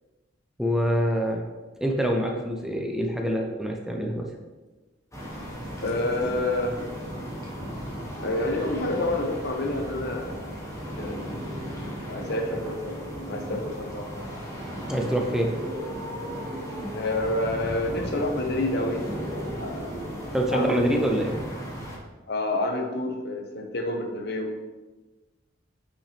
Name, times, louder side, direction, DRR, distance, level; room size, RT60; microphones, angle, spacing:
voice 1, 0.6-1.4 1.8-4.3 14.9-15.5 20.3-21.3, equal, 5° right, 1 dB, 0.7 m, -25 dB
sound 1, 5.1-22.0, equal, 15° left, 1.4 m, -35 dB
voice 2, 5.8-6.8 8.2-11.3 12.1-14.4 15.4-15.5 16.9-20.0 20.5-21.0 22.3-24.5, left 1 dB, 60° left, 2 dB, 1.1 m, -29 dB
8.7 x 5.5 x 3.4 m, 1.2 s
head